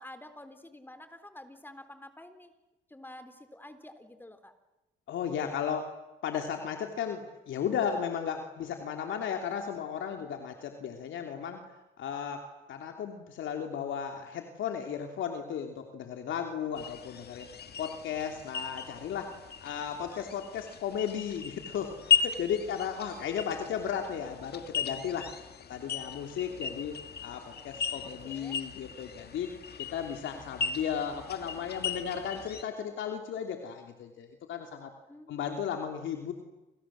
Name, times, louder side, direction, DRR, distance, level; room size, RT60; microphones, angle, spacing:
voice 1, 0.0-2.5 2.9-4.5 28.2-28.6 35.1-35.3, left 1 dB, 10° left, 9 dB, 3.7 m, -49 dB
voice 2, 5.1-5.9 6.2-11.6 12.0-17.5 17.8-25.3 25.7-27.0 27.2-29.5 29.8-34.9 35.3-36.3, left 8 dB, 75° left, 4 dB, 3.1 m, -35 dB
sound 1, 16.7-32.6, left 7 dB, 55° left, 2.2 m, -36 dB
28.5 x 27.0 x 7.7 m, 1.0 s
cardioid pair, 90°, 20 cm